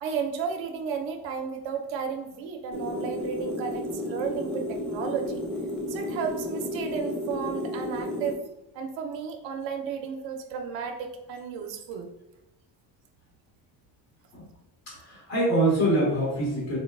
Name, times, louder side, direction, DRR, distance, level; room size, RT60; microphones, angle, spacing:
voice 1, 0.0-5.4 5.9-8.4 8.7-12.1, right 6 dB, 80° right, 3 dB, 0.6 m, -33 dB
sound 1, 2.7-8.3, left 1 dB, ahead, 0.4 m, -32 dB
voice 2, 14.9-16.8, right 1 dB, 85° left, -4 dB, 1.4 m, -24 dB
4.2 x 2.3 x 2.3 m, 0.96 s
cardioid pair, 115°, 44 cm